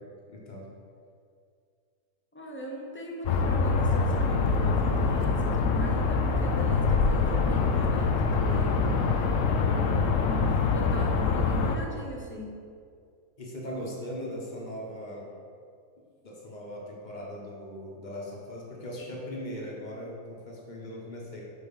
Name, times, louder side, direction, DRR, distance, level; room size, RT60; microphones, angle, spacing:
voice 1, 0.3-0.7 9.2-9.8 13.4-15.3 16.2-21.4, equal, 30° left, -2 dB, 1.2 m, -39 dB
voice 2, 2.3-8.8 9.7-9.9 10.1-12.6, equal, 15° left, -2 dB, 0.4 m, -40 dB
sound 1, 3.2-11.8, left 4 dB, 65° left, 0.9 m, -25 dB
6.6 x 4.7 x 5.4 m, 2.2 s
omnidirectional pair, 1.7 m